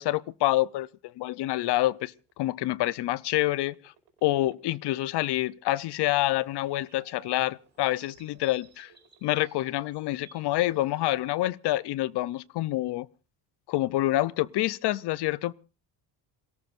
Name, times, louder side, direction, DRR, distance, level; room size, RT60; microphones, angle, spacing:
voice 1, 0.0-3.9 4.2-8.9 9.2-13.1 13.7-15.5, left 16 dB, 65° left, 0.7 m, -27 dB
sound 1, 2.0-10.1 10.5-11.2, right 9 dB, 65° right, 5.0 m, -64 dB
sound 2, 5.8-11.5, right 5 dB, 25° right, 6.5 m, -58 dB
28.0 x 17.5 x 2.6 m
cardioid pair, 145°, 43 cm